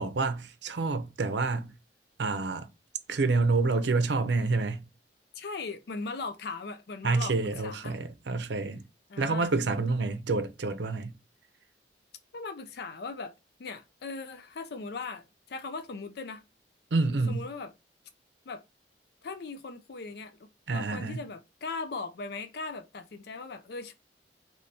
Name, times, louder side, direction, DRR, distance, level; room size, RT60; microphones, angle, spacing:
voice 1, 0.0-1.7 2.2-2.7 3.1-4.8 7.0-8.8 9.2-11.1 16.9-17.5 20.7-21.2, right 3 dB, 75° right, 0.6 m, -28 dB
voice 2, 5.4-8.0 9.1-9.5 12.3-13.3 13.6-16.4 17.3-17.7 18.5-18.6 19.2-20.4 20.7-23.9, left 4 dB, 60° left, 0.4 m, -39 dB
4.2 x 3.1 x 3.3 m
head